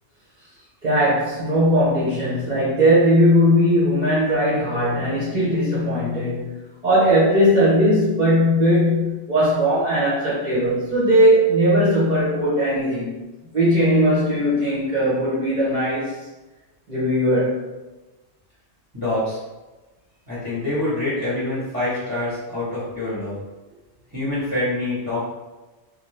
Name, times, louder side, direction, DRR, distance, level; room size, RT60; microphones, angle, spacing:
voice 1, 0.8-6.5 6.8-13.2 13.5-16.1 16.9-17.6, equal, 40° right, -9 dB, 0.9 m, -19 dB
voice 2, 4.7-5.2 18.9-19.4 20.3-23.4 24.1-25.3, left 1 dB, 20° right, -10 dB, 1.0 m, -26 dB
2.7 x 2.3 x 3.2 m, 1.1 s
omnidirectional pair, 1.1 m